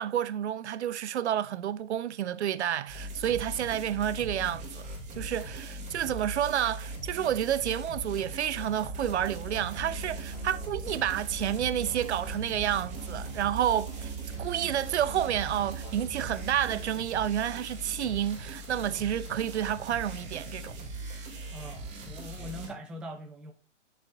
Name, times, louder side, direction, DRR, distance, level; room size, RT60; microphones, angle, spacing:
voice 1, 0.0-14.1 14.4-20.8, right 10 dB, 65° right, 0.7 m, -30 dB
sound 1, 2.9-22.7, right 1 dB, 20° right, 2.9 m, -40 dB
Musical instrument, 8.9-16.8, right 8 dB, 45° left, 3.8 m, -41 dB
voice 2, 21.5-23.5, equal, 5° right, 0.5 m, -42 dB
11.5 x 6.5 x 2.7 m
hypercardioid pair, 130°, 36 cm